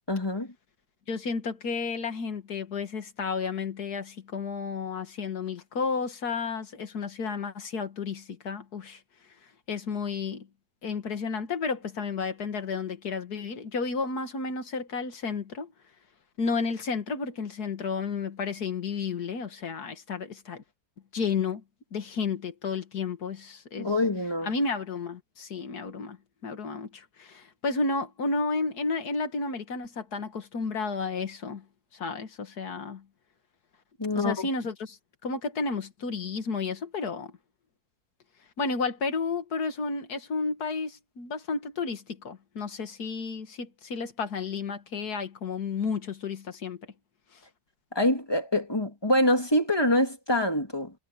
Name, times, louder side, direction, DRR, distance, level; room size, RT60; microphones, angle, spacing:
voice 1, 0.1-0.5 23.8-24.5 34.0-34.5 47.9-50.9, left 1 dB, 15° left, 2.8 m, -25 dB
voice 2, 1.1-9.0 9.7-10.5 10.8-15.7 16.4-20.6 21.1-21.6 21.9-23.9 24.4-26.2 26.4-31.6 31.9-33.0 34.1-37.3 38.6-46.8, left 4 dB, 75° left, 2.3 m, -32 dB
omnidirectional pair, 1.7 m